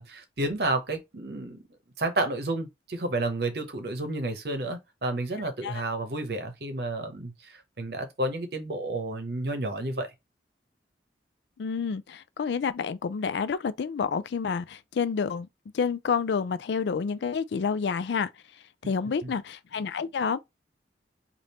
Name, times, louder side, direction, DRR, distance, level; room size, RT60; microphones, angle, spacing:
voice 1, 0.0-1.6 2.0-10.1 19.2-19.3, right 2 dB, 65° right, 0.8 m, -31 dB
voice 2, 11.6-15.5 15.7-18.3 18.8-20.4, left 6 dB, 75° left, 0.4 m, -29 dB
3.4 x 2.5 x 4.1 m
head